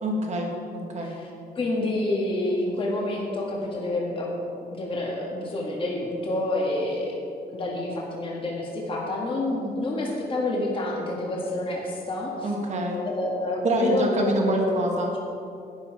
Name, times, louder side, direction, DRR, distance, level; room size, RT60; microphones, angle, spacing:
voice 1, 0.0-1.1 12.4-13.0 13.6-15.1, right 1 dB, 45° right, 0 dB, 2.0 m, -26 dB
voice 2, 1.0-1.3 1.6-4.3 4.7-7.2 7.5-12.5 13.1-14.9, left 1 dB, 30° left, -3 dB, 1.8 m, -28 dB
11.5 x 9.8 x 5.0 m, 2.6 s
cardioid pair, 150°, 17 cm